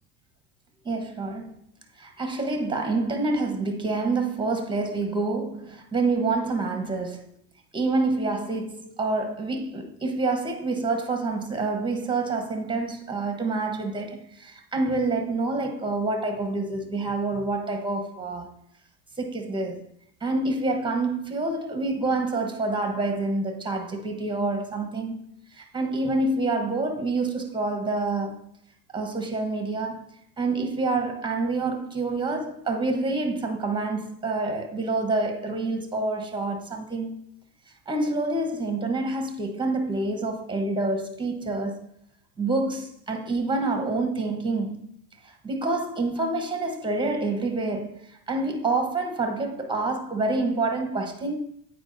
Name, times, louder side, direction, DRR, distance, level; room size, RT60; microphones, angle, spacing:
voice 1, 0.8-1.6 2.0-7.3 7.7-18.5 19.2-19.8 20.2-25.2 25.5-28.4 28.9-30.0 30.4-37.1 37.9-41.8 42.4-44.9 45.4-51.4, right 3 dB, 10° right, 1.2 m, -27 dB
8.6 x 4.8 x 2.7 m
hypercardioid pair, 85°, 46 cm